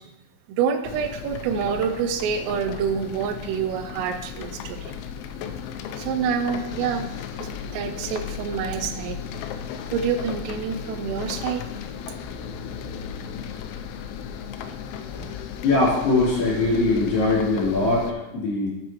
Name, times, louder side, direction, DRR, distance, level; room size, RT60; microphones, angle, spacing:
voice 1, 0.5-4.9 6.0-7.1 7.4-9.2 9.9-11.6, right 7 dB, 85° right, 8 dB, 3.2 m, -27 dB
sound 1, 0.8-18.1, left 7 dB, 85° left, 2.7 m, -35 dB
voice 2, 15.6-18.7, left 2 dB, 45° left, -7 dB, 4.8 m, -21 dB
9.4 x 8.9 x 3.0 m, 0.96 s
omnidirectional pair, 5.8 m